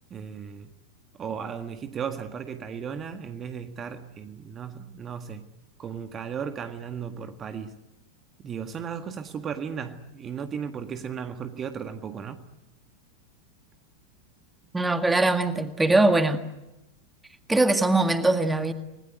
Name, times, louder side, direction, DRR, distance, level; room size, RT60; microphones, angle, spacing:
voice 1, 0.1-0.7 1.2-5.5 5.8-7.8 8.4-12.5, right 7 dB, 25° right, 1.8 m, -35 dB
voice 2, 14.7-16.4 17.5-18.7, right 2 dB, 10° right, 1.9 m, -21 dB
30.0 x 20.5 x 9.4 m
figure-of-eight pair, 90°, 0 cm